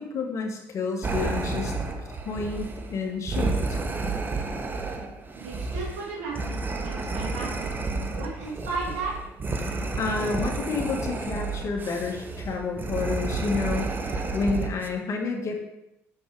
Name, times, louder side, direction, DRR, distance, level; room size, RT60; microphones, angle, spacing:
voice 1, 0.0-3.8 10.0-15.6, left 4 dB, 50° left, 1 dB, 1.7 m, -30 dB
sound 1, 1.0-14.9, right 3 dB, 30° right, 1.0 m, -31 dB
voice 2, 5.3-9.1, right 4 dB, 80° right, -7 dB, 2.7 m, -35 dB
6.4 x 5.3 x 4.8 m, 0.87 s
supercardioid pair, 70°, 7 cm